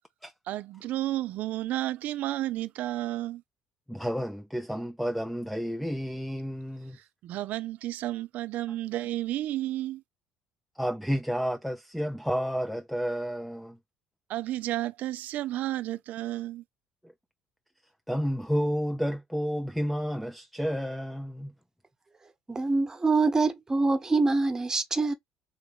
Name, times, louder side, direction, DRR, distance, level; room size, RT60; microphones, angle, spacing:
voice 1, 0.5-3.4 7.2-10.0 14.3-16.6, right 14 dB, 65° right, 0.5 m, -32 dB
voice 2, 3.9-7.0 8.7-8.8 10.7-13.8 17.0-17.1 18.1-21.5, equal, ahead, 0.4 m, -31 dB
voice 3, 22.5-25.1, right 3 dB, 20° right, 1.1 m, -25 dB
3.9 x 3.1 x 3.0 m
supercardioid pair, 90°, 3 cm